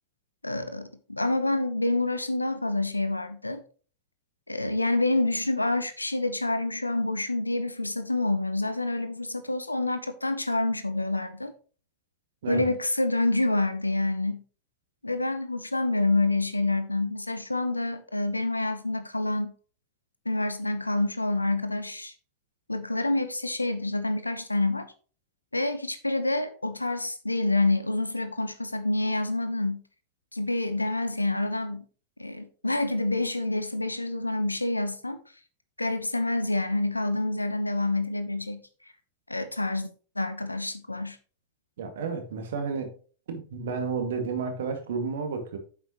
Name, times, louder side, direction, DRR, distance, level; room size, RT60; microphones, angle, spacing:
voice 1, 0.4-3.6 4.5-11.5 12.5-14.4 15.0-19.5 20.2-22.1 22.7-24.9 25.5-29.8 30.3-31.8 32.2-35.2 35.8-38.6 39.3-39.9 40.2-41.2, left 2 dB, 85° left, 0.8 m, -27 dB
voice 2, 12.4-12.7 41.8-42.9 43.3-45.6, right 5 dB, 60° right, 2.1 m, -31 dB
8.9 x 7.5 x 3.1 m
figure-of-eight pair, 90°, 0 cm